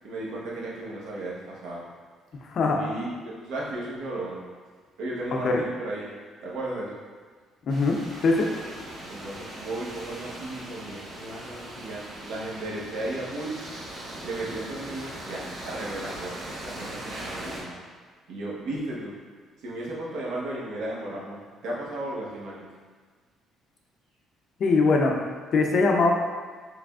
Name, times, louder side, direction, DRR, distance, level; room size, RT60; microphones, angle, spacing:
voice 1, 0.0-1.9 2.6-4.4 5.0-6.2 6.4-7.0 9.1-13.8 14.2-17.8 18.3-19.2 19.6-22.7, right 1 dB, 80° right, -5 dB, 1.0 m, -35 dB
voice 2, 2.4-2.8 5.4-5.6 7.7-8.0 8.2-8.5 24.6-25.1 25.5-26.1, left 3 dB, 45° left, 1 dB, 0.5 m, -21 dB
sound 1, 7.7-17.6, right 1 dB, 55° right, 1.0 m, -39 dB
4.8 x 3.4 x 2.3 m, 1.6 s
cardioid pair, 150°, 0 cm